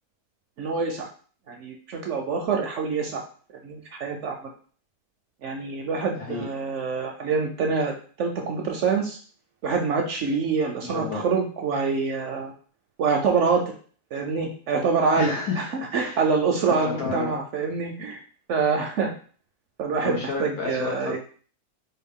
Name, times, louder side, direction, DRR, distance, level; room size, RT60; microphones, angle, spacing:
voice 1, 0.6-1.1 1.5-3.2 3.6-4.3 5.4-9.2 9.6-12.5 13.0-13.7 14.1-15.3 15.9-18.2 18.5-19.1 19.8-21.2, right 5 dB, 65° right, 2 dB, 0.7 m, -25 dB
voice 2, 10.8-11.2 15.2-16.2 16.7-17.3 20.0-21.2, left 4 dB, 85° left, -2 dB, 1.7 m, -31 dB
4.1 x 2.3 x 3.6 m, 0.42 s
omnidirectional pair, 1.6 m